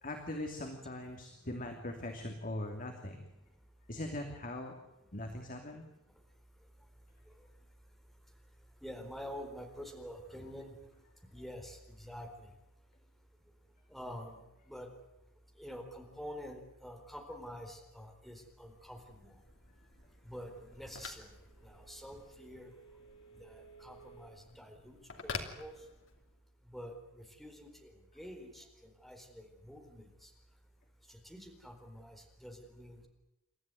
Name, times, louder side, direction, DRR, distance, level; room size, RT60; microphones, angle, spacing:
voice 1, 0.0-3.2 3.9-4.7 5.1-5.8, left 1 dB, 40° left, 3 dB, 2.8 m, -41 dB
voice 2, 8.8-10.7 11.3-12.5 13.9-14.9 15.6-19.3 20.2-21.3 21.6-22.7 23.4-25.0 25.2-25.3 25.6-25.7 26.7-30.3 31.1-33.1, equal, ahead, 3 dB, 4.3 m, -47 dB
Telephone, 18.5-26.4, left 4 dB, 60° left, 2.8 m, -49 dB
29.0 x 14.0 x 9.3 m, 0.94 s
head